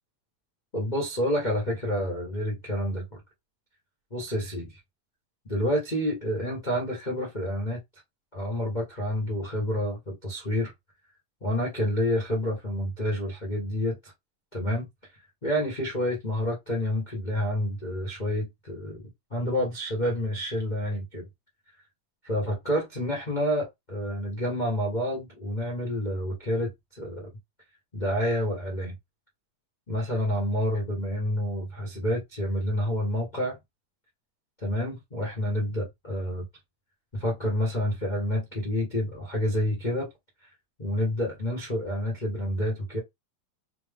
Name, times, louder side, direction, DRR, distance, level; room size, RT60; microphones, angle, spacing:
voice 1, 0.7-3.2 4.1-4.8 5.5-7.8 8.3-10.7 11.4-14.1 14.5-14.9 15.4-19.0 19.3-21.2 22.2-27.3 27.9-29.0 29.9-33.6 34.6-36.4 37.1-40.1 40.8-43.0, equal, 85° left, 0.4 m, -28 dB
5.9 x 2.1 x 3.6 m
omnidirectional pair, 3.5 m